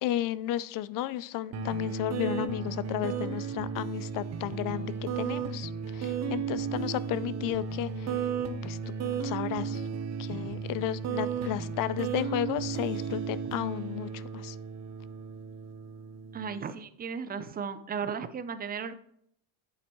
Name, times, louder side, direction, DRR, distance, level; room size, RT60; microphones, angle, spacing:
voice 1, 0.0-8.2 8.6-8.8 9.2-9.8 10.2-14.6, left 13 dB, 50° left, 18 dB, 0.4 m, -33 dB
sound 1, 1.5-16.6, right 6 dB, 35° right, 0.9 m, -34 dB
voice 2, 16.3-18.9, right 6 dB, 20° right, 12 dB, 0.5 m, -35 dB
8.6 x 7.9 x 3.1 m, 0.68 s
cardioid pair, 130°, 45 cm